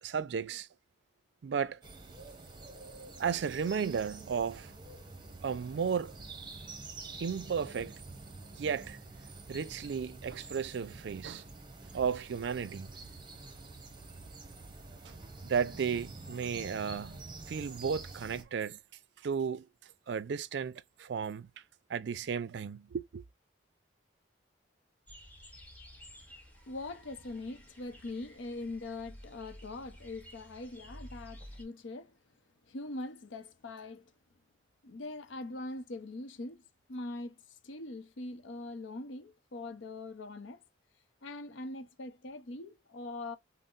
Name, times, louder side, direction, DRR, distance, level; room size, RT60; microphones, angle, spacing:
voice 1, 0.0-0.7 1.4-1.8 3.2-4.7 5.4-6.2 7.2-8.0 8.5-9.0 9.5-11.5 11.9-12.9 15.1-15.2 15.4-17.2 17.5-18.8 19.2-19.7 20.1-21.5 21.9-23.2, right 6 dB, 65° right, 0.4 m, -34 dB
sound 1, 1.8-18.4, right 3 dB, 25° right, 0.7 m, -48 dB
sound 2, 25.1-31.6, equal, 10° left, 0.9 m, -52 dB
voice 2, 26.7-32.2 32.7-34.1 34.8-37.4 37.6-40.6 41.2-43.4, left 2 dB, 80° left, 0.6 m, -42 dB
5.4 x 2.0 x 2.4 m
head